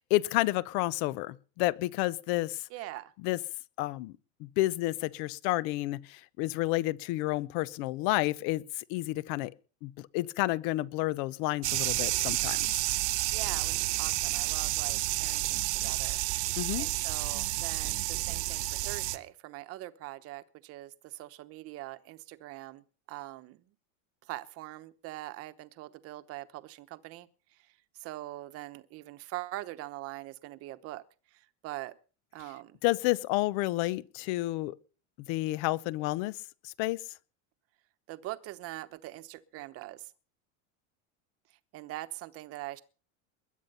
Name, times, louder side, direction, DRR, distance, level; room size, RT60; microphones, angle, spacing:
voice 1, 0.1-2.6 3.2-3.4 3.8-4.1 4.4-9.5 9.8-12.7 16.6-16.9 32.8-34.8 35.2-36.4 36.6-37.0, left 18 dB, 50° left, 0.7 m, -30 dB
voice 2, 2.7-3.1 13.3-16.2 16.5-23.7 24.2-31.0 31.3-32.0 32.3-32.8 38.1-40.1 41.7-42.8, right 17 dB, 40° right, 1.0 m, -43 dB
sound 1, 11.6-19.2, right 20 dB, 65° right, 1.2 m, -30 dB
21.0 x 10.0 x 5.5 m
supercardioid pair, 160°, 38 cm